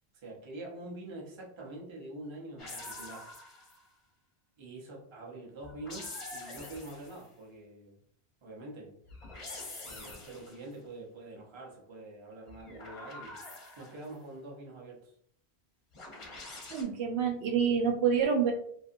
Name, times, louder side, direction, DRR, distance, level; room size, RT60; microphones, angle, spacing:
voice 1, 0.1-3.3 4.6-8.0 8.4-9.0 9.8-13.4 13.8-15.1, right 2 dB, 30° right, -2 dB, 0.6 m, -45 dB
sound 1, 2.6-3.9 5.6-7.3 9.1-10.7 12.5-14.1 15.9-16.8, left 2 dB, 35° left, 0.6 m, -45 dB
voice 2, 16.7-18.5, right 7 dB, 80° right, 2 dB, 0.8 m, -27 dB
2.7 x 2.5 x 2.5 m, 0.66 s
omnidirectional pair, 1.1 m